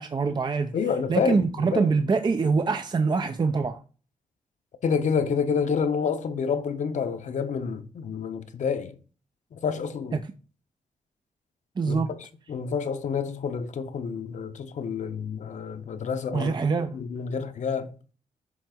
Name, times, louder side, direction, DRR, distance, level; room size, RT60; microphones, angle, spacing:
voice 1, 0.0-0.8 1.1-3.8 10.1-10.3 11.8-12.1 16.3-17.0, right 4 dB, 30° right, 0.6 m, -24 dB
voice 2, 0.7-1.4 1.7-1.9 4.8-9.0 9.5-10.2 11.9-12.0 12.5-16.5 16.9-18.0, left 6 dB, 60° left, 1.0 m, -28 dB
7.2 x 3.4 x 5.0 m
cardioid pair, 90°, 14 cm